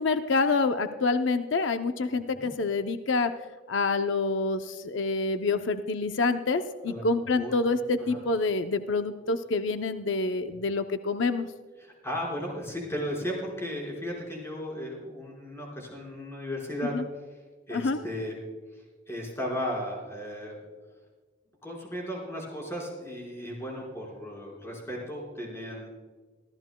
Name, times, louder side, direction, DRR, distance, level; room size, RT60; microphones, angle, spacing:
voice 1, 0.0-3.3 3.7-11.5 16.9-17.0 17.7-18.0, left 3 dB, 85° left, 8 dB, 0.6 m, -27 dB
voice 2, 2.1-2.5 6.9-7.0 7.4-7.5 8.0-8.2 11.8-16.9 17.7-18.3 18.7-20.6 21.6-25.9, equal, 15° left, -3 dB, 4.7 m, -35 dB
25.5 x 14.0 x 2.2 m, 1.4 s
head